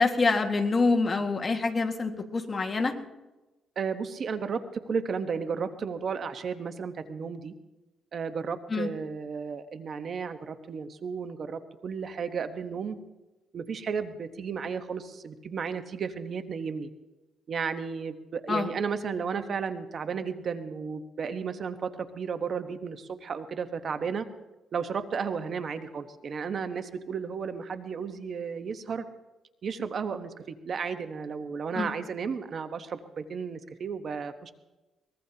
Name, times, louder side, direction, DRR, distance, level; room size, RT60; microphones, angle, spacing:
voice 1, 0.0-3.0 8.7-8.9 18.5-18.7 31.8-31.9, left 3 dB, 30° left, 4 dB, 1.8 m, -26 dB
voice 2, 3.8-7.5 8.1-13.0 13.5-16.9 17.5-24.3 24.7-29.0 29.6-34.5, right 6 dB, 50° right, 9 dB, 1.1 m, -33 dB
23.0 x 21.0 x 2.9 m, 1.1 s
cardioid pair, 105°, 0 cm